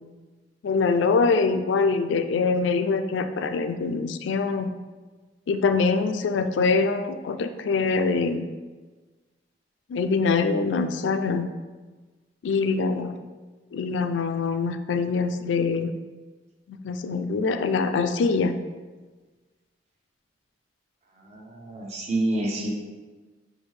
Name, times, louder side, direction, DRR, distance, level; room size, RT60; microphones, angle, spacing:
voice 1, 0.6-4.7 5.5-8.5 9.9-11.5 12.4-13.2 13.7-15.9 16.7-18.5, left 4 dB, 70° left, 8 dB, 0.3 m, -24 dB
voice 2, 21.2-22.7, right 1 dB, 35° right, 0 dB, 0.7 m, -28 dB
5.9 x 2.7 x 3.2 m, 1.3 s
head